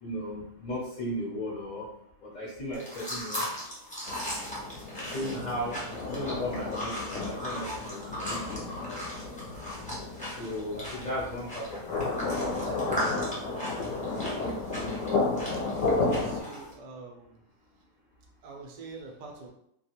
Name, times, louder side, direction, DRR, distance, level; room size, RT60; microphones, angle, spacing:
voice 1, 0.0-1.9 2.2-3.5 5.0-5.8 6.1-9.0 9.4-9.5 10.4-13.3, equal, 50° left, -6 dB, 0.7 m, -36 dB
sound 1, 2.7-16.7, equal, 10° left, 0.6 m, -38 dB
sound 2, 4.1-16.4, left 3 dB, 75° left, 0.9 m, -33 dB
voice 2, 15.5-17.4 18.4-19.5, right 3 dB, 70° right, 0 dB, 0.4 m, -45 dB
2.3 x 2.2 x 2.8 m, 0.75 s
omnidirectional pair, 1.4 m